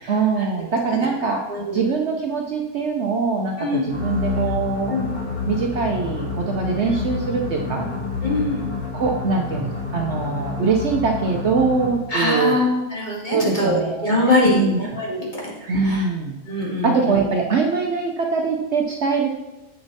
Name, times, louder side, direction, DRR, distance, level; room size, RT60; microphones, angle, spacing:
voice 1, 0.1-1.4 1.7-5.0 5.5-7.9 8.9-12.6 13.3-14.8 15.7-16.4 16.8-19.3, right 4 dB, 60° right, 2 dB, 0.9 m, -23 dB
voice 2, 1.5-1.8 3.6-3.9 4.9-5.1 8.2-8.6 12.1-15.3 15.8-16.0 16.5-17.2, left 2 dB, 30° left, -5 dB, 2.2 m, -22 dB
sound 1, 3.9-12.1, left 3 dB, 75° left, 1.9 m, -28 dB
8.2 x 6.5 x 4.1 m, 1.0 s
omnidirectional pair, 1.5 m